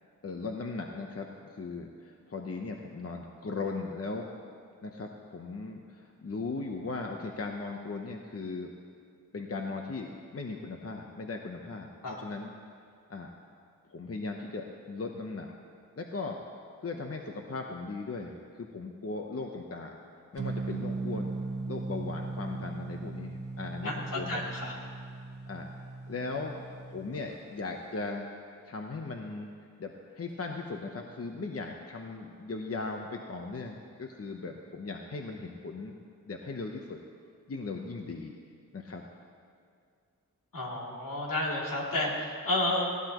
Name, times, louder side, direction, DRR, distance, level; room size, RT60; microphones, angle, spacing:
voice 1, 0.2-4.3 4.8-8.7 9.3-12.5 13.1-13.3 13.9-15.5 15.9-16.4 16.8-20.0 20.3-21.3 21.6-24.4 25.5-25.7 26.1-26.5 26.9-28.3 28.7-29.5 29.8-35.9 36.3-37.0 37.5-38.4 38.7-39.0, left 3 dB, 45° left, 2 dB, 0.9 m, -38 dB
sound 1, 20.4-27.2, right 3 dB, 75° right, 1.5 m, -38 dB
voice 2, 24.3-24.7 40.5-42.9, left 1 dB, 80° left, -4 dB, 3.0 m, -31 dB
19.5 x 16.0 x 3.1 m, 2.2 s
wide cardioid pair, 90°, 33 cm